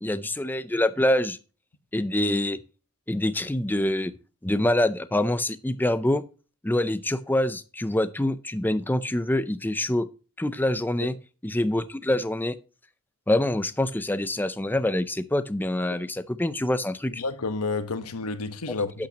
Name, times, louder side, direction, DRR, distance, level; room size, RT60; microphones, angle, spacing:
voice 1, 0.0-1.4 1.9-2.6 3.1-4.1 4.4-6.2 6.6-10.1 10.4-11.1 11.4-12.5 13.3-17.2 19.0-19.1, left 1 dB, 10° left, 0.5 m, -25 dB
voice 2, 17.2-19.1, left 3 dB, 80° left, 1.2 m, -30 dB
12.0 x 8.7 x 2.9 m
head